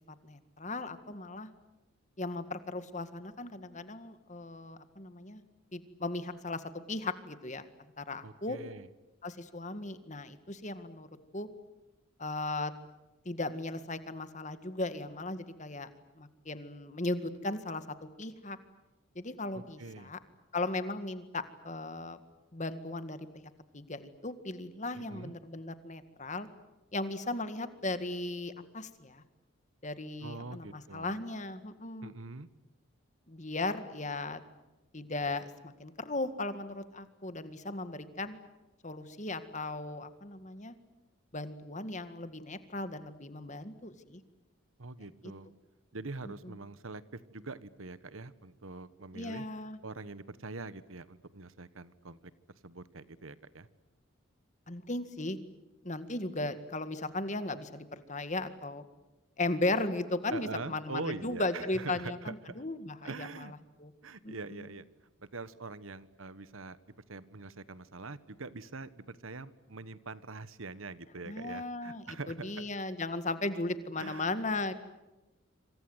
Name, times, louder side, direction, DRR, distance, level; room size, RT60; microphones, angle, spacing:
voice 1, 0.2-1.5 2.2-5.4 5.7-6.6 6.9-7.7 8.0-8.6 9.2-11.1 11.3-11.5 12.2-12.7 13.3-15.9 16.2-18.6 19.2-20.2 20.5-22.2 22.5-26.5 26.9-29.2 29.8-32.1 33.3-34.4 34.9-38.4 38.8-40.8 41.3-44.2 46.4-46.6 49.1-49.8 54.7-55.4 55.8-58.8 59.4-63.5 63.8-63.9 64.2-64.7 71.3-74.7, left 2 dB, 35° left, 11 dB, 1.9 m, -37 dB
voice 2, 8.2-8.9 19.5-20.1 25.0-25.3 30.2-31.2 32.0-32.5 44.8-45.5 45.9-49.5 49.8-52.2 52.6-53.7 60.3-62.6 63.0-63.5 64.0-64.8 65.2-72.5 74.0-74.2, right 3 dB, 75° right, 15 dB, 1.4 m, -44 dB
27.0 x 26.5 x 8.1 m, 1.1 s
head